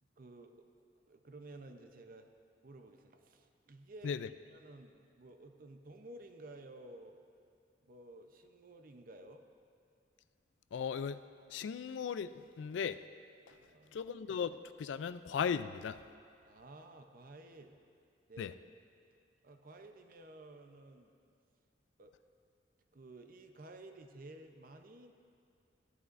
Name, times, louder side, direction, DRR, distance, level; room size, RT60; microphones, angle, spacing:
voice 1, 0.2-0.7 1.1-2.3 2.6-4.2 4.5-7.2 7.8-9.4 13.5-14.0 16.4-17.8 18.3-18.5 19.4-21.1 22.0-22.1 22.9-25.1, right 2 dB, 50° right, 6 dB, 0.6 m, -53 dB
voice 2, 10.7-11.2 11.5-12.3 12.6-13.0 13.9-16.0 18.4-18.5, left 7 dB, 80° left, 13 dB, 0.3 m, -37 dB
15.0 x 11.0 x 2.5 m, 2.3 s
head